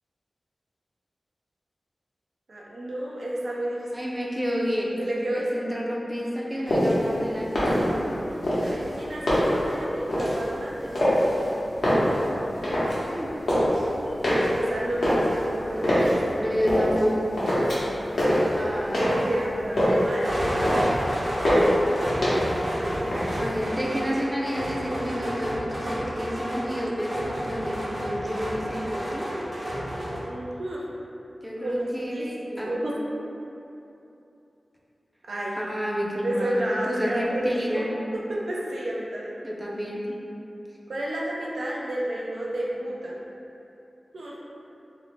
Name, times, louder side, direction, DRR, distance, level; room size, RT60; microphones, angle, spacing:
voice 1, 2.5-3.8 5.0-5.4 8.6-11.6 14.0-14.2 14.5-16.2 19.1-20.4 30.2-30.8 31.6-32.9 35.2-35.6 36.2-37.8 38.1-39.3 40.9-43.2 44.1-44.4, right 1 dB, 80° right, -5 dB, 0.4 m, -31 dB
voice 2, 3.9-4.9 5.3-8.3 13.1-13.3 16.3-17.5 18.5-19.5 23.3-29.3 31.4-32.8 35.6-38.0 39.4-40.2, equal, 5° right, -4 dB, 0.4 m, -30 dB
sound 1, 6.6-7.1 7.4-8.1 8.4-9.7 10.1-10.4 10.9-11.4 11.7-13.0 13.3-13.8 14.2-16.2 16.7-17.1 17.4-17.9 18.2-19.3 19.6-20.1 20.4-21.0 21.4-21.8 22.2-22.7 23.0-23.6, equal, 85° left, 0.7 m, -23 dB
sound 2, 20.2-30.2, equal, 60° right, 0.8 m, -30 dB
2.6 x 2.0 x 3.0 m, 2.8 s
wide cardioid pair, 70°, 0 cm